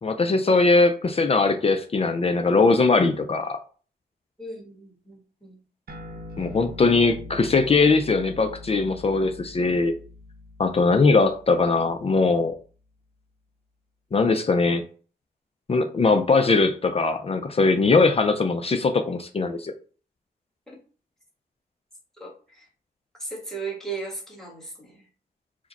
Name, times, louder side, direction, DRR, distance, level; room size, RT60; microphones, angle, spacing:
voice 1, 0.0-3.6 6.4-9.9 10.6-12.5 14.1-14.8 15.7-19.7, left 3 dB, 35° left, 0.4 m, -20 dB
voice 2, 4.4-5.6 20.7-20.8 22.2-22.7 23.2-25.0, right 4 dB, 5° left, 1.5 m, -36 dB
sound 1, 5.9-12.7, left 2 dB, 70° right, 0.8 m, -43 dB
4.8 x 2.2 x 4.0 m
wide cardioid pair, 135°, 16 cm